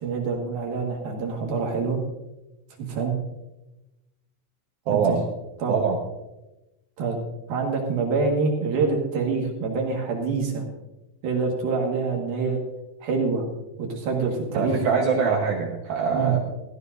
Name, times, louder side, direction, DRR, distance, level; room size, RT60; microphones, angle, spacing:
voice 1, 0.0-2.0 2.8-3.1 4.9-5.2 5.6-5.7 7.0-7.2 7.5-10.6 11.2-12.6 13.0-13.4 13.8-14.7 16.1-16.3, right 4 dB, 60° right, 0 dB, 3.0 m, -26 dB
voice 2, 4.9-5.2 5.7-6.0 14.5-16.4, right 5 dB, 75° right, 0 dB, 2.2 m, -23 dB
15.5 x 14.5 x 2.6 m, 0.99 s
omnidirectional pair, 5.9 m